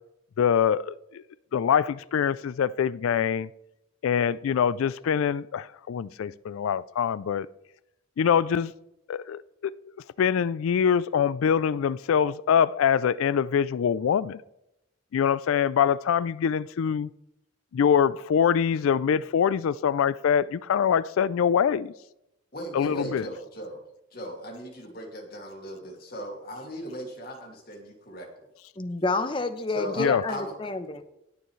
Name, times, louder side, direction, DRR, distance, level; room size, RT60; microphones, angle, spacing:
voice 1, 0.4-1.2 1.5-3.5 4.0-7.5 8.2-8.7 9.1-9.7 10.2-14.4 15.1-17.1 17.7-21.9 22.7-23.3 30.0-30.2, left 7 dB, 85° left, 0.3 m, -24 dB
voice 2, 22.5-23.8 24.1-28.3 29.7-30.6, equal, 50° left, 2.3 m, -38 dB
voice 3, 28.8-31.0, left 3 dB, 25° left, 0.8 m, -29 dB
19.0 x 6.9 x 3.2 m
head